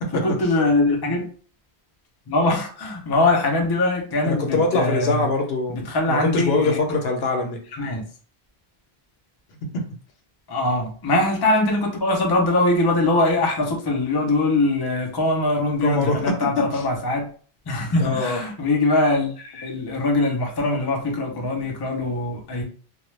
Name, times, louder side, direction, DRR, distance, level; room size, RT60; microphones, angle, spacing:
voice 1, 0.1-1.2 2.3-5.3 5.7-6.8 7.7-8.0 10.5-17.3 17.7-22.6, left 2 dB, 30° left, 0 dB, 0.5 m, -22 dB
voice 2, 4.2-7.6 9.7-9.8 15.8-16.8 17.9-18.4, left 3 dB, 75° left, 2 dB, 0.9 m, -23 dB
2.2 x 2.2 x 3.1 m, 0.41 s
omnidirectional pair, 1.0 m